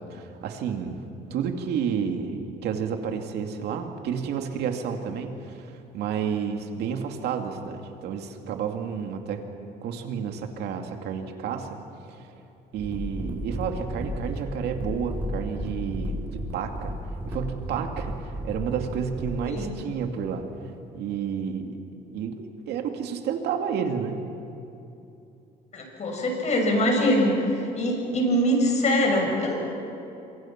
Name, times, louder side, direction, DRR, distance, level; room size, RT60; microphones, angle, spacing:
voice 1, 0.1-1.1 1.3-9.4 9.8-11.8 12.1-12.2 12.7-16.9 17.3-20.4 20.9-21.8 22.1-24.2, right 7 dB, 75° right, 4 dB, 2.4 m, -30 dB
sound 1, 12.7-19.4, equal, 10° right, 7.0 m, -33 dB
voice 2, 19.4-19.8 25.7-27.3 27.7-29.6, equal, 40° left, 1 dB, 6.8 m, -23 dB
27.5 x 24.0 x 6.0 m, 2.8 s
cardioid pair, 110°, 17 cm